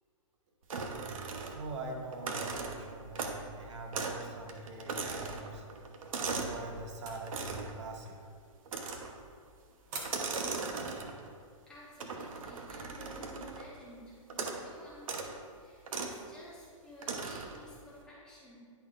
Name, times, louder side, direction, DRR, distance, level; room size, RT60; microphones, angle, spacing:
sound 1, 0.7-1.8 2.1-3.5 3.9-4.2 4.5-6.6 7.3-7.8 8.7-9.2 10.0-11.3 12.0-13.7 14.3-14.7 15.0-15.3 15.9-16.2 17.0-17.6, right 4 dB, 80° right, 1.0 m, -38 dB
voice 1, 1.5-5.6 6.2-8.2, right 2 dB, 60° right, 1 dB, 1.2 m, -43 dB
sound 2, 7.0-12.5, right 3 dB, 30° right, 1.0 m, -50 dB
voice 2, 11.7-18.7, left 1 dB, 5° left, -8 dB, 1.4 m, -53 dB
10.5 x 6.1 x 2.5 m, 2.1 s
hypercardioid pair, 160°, 17 cm